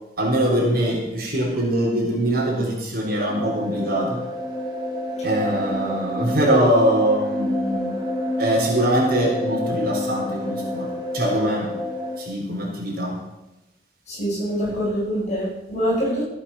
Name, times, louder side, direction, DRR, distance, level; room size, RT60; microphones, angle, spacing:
voice 1, 0.2-4.2 5.2-8.0 8.4-11.8 12.2-13.2, right 1 dB, 60° right, -2 dB, 4.7 m, -22 dB
sound 1, 3.3-12.2, left 1 dB, 25° right, 2.8 m, -28 dB
voice 2, 14.1-16.2, equal, 40° left, -4 dB, 6.3 m, -24 dB
15.0 x 8.5 x 7.4 m, 0.98 s
head